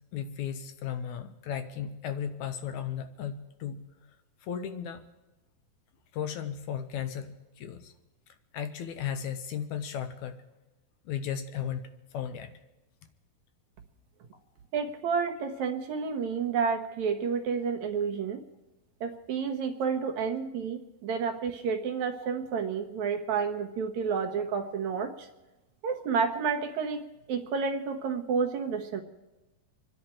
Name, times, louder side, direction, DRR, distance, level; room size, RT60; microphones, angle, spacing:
voice 1, 0.1-3.8 4.4-5.0 6.1-7.9 8.5-10.4 11.1-12.5 20.0-20.1, left 8 dB, 70° left, 9 dB, 2.0 m, -35 dB
voice 2, 14.7-18.4 19.0-25.3 25.8-29.0, right 5 dB, 65° right, 5 dB, 2.2 m, -30 dB
26.5 x 11.0 x 4.5 m, 1.1 s
omnidirectional pair, 4.1 m